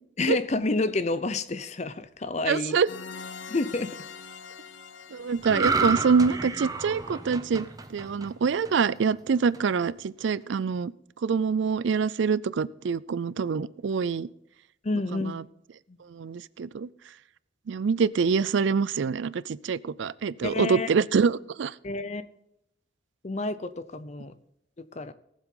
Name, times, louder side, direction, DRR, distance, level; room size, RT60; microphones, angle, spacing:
voice 1, 0.2-2.8 3.5-4.0 14.8-15.4 15.9-16.0 20.4-20.9 21.8-22.2 23.2-24.3 24.8-25.1, left 3 dB, 35° left, 13 dB, 0.6 m, -29 dB
voice 2, 2.5-2.9 5.1-10.9 11.2-14.3 15.1-15.4 16.1-16.9 17.7-21.7, right 5 dB, 70° right, 20 dB, 0.4 m, -25 dB
sound 1, 2.9-7.5, left 5 dB, 80° left, 0.7 m, -44 dB
sound 2, 5.4-8.9 9.3-9.6, right 4 dB, 20° right, 0.6 m, -30 dB
19.0 x 7.4 x 3.8 m, 0.78 s
head